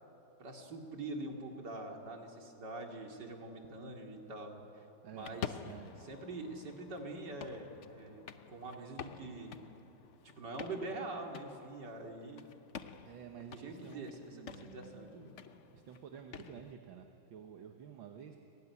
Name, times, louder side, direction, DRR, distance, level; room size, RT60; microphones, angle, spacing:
voice 1, 0.4-4.9 5.1-5.6 6.0-9.6 10.2-12.5 13.6-15.3, right 2 dB, 60° right, 2 dB, 3.2 m, -44 dB
voice 2, 5.0-5.4 5.6-6.0 13.0-15.2 15.7-18.4, right 8 dB, 75° right, 4 dB, 2.0 m, -51 dB
sound 1, 5.1-16.7, left 7 dB, 55° left, 0.8 m, -49 dB
28.5 x 19.0 x 9.8 m, 3.0 s
omnidirectional pair, 2.1 m